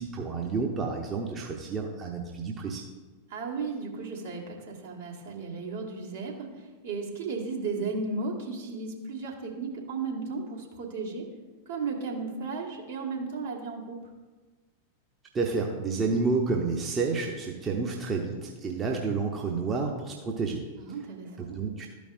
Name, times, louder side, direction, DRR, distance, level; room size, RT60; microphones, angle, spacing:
voice 1, 0.0-2.8 15.3-20.6 21.4-21.9, right 4 dB, 25° right, 1 dB, 0.8 m, -30 dB
voice 2, 3.3-11.3 11.7-14.0 20.8-21.6, right 4 dB, 60° right, -2 dB, 1.5 m, -35 dB
12.5 x 5.1 x 2.5 m, 1.3 s
figure-of-eight pair, 90°, 0 cm